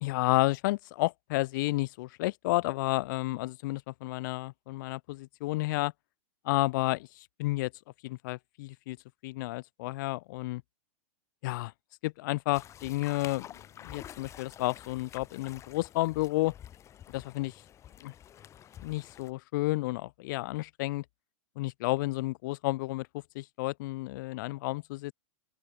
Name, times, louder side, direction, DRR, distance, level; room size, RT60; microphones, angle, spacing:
voice 1, 0.0-5.9 6.4-7.1 7.4-7.7 8.0-9.0 9.2-10.6 11.4-11.7 12.0-13.5 13.8-16.5 17.1-17.6 18.0-18.1 18.8-21.0 21.6-23.1 23.3-25.1, left 20 dB, 35° left, 0.5 m, -31 dB
sound 1, 12.5-19.3, left 10 dB, 15° left, 2.8 m, -49 dB
open air
supercardioid pair, 175°, 17 cm